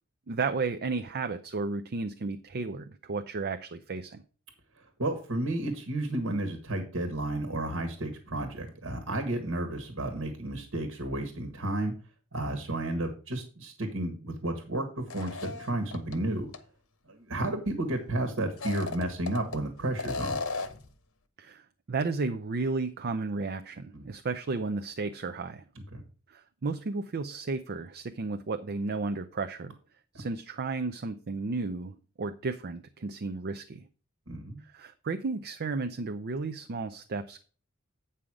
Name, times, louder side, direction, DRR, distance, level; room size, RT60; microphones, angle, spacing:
voice 1, 0.3-4.2 21.4-21.6 21.9-25.6 26.3-29.7 30.1-33.8 34.7-37.4, right 3 dB, 50° right, 7 dB, 0.5 m, -33 dB
voice 2, 5.0-11.9 12.3-16.5 17.1-20.4 23.9-24.0 25.7-26.0 34.3-34.6, right 1 dB, 70° right, 6 dB, 1.6 m, -32 dB
sound 1, 15.1-16.2 16.5-16.6 18.5-19.6 20.0-20.9, left 3 dB, 70° left, 1.0 m, -35 dB
8.9 x 5.5 x 4.8 m, 0.39 s
head